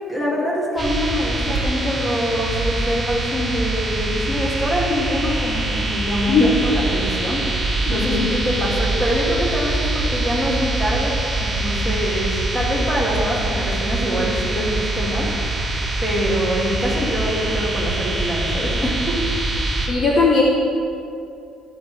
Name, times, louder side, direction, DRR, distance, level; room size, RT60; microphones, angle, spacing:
voice 1, 0.1-11.1 11.4-15.3 15.6-15.7 16.0-19.1, equal, 10° left, -4 dB, 2.0 m, -24 dB
sound 1, 0.8-19.9, right 2 dB, 15° right, 1.8 m, -24 dB
voice 2, 7.9-8.4 19.9-20.4, left 4 dB, 30° left, -2 dB, 1.0 m, -18 dB
14.0 x 10.5 x 3.4 m, 2.6 s
cardioid pair, 175°, 0 cm